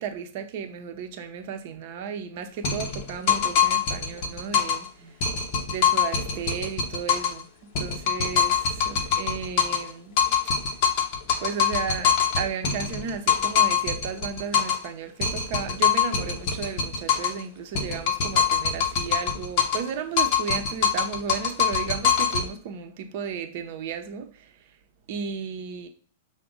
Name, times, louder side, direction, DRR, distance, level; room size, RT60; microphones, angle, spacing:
voice 1, 0.0-5.2 5.7-10.4 11.4-24.5 25.1-25.9, right 7 dB, 55° right, 0.6 m, -34 dB
sound 1, 2.6-4.9 5.2-7.4 7.7-9.9 10.2-14.9 15.2-17.4 17.7-19.9 20.2-22.5, left 7 dB, 50° left, 0.8 m, -24 dB
5.8 x 2.1 x 3.8 m
hypercardioid pair, 105°, 0 cm